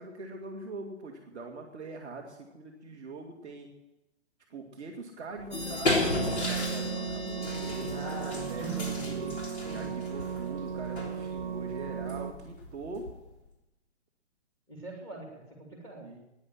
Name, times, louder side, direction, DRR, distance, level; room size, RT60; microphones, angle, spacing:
voice 1, 0.0-3.7 4.5-9.4 9.7-13.1 16.0-16.2, right 3 dB, 5° right, -11 dB, 0.5 m, -43 dB
sound 1, 5.4-13.5, left 2 dB, 65° left, 3.6 m, -35 dB
sound 2, 5.5-9.1, left 2 dB, 85° left, 4.0 m, -40 dB
sound 3, 6.1-12.3, right 7 dB, 45° right, 0.9 m, -36 dB
voice 2, 7.8-9.3 9.7-9.9 14.7-16.1, right 1 dB, 10° left, -1 dB, 2.8 m, -42 dB
9.8 x 9.7 x 10.0 m, 0.97 s
hypercardioid pair, 165°, 35 cm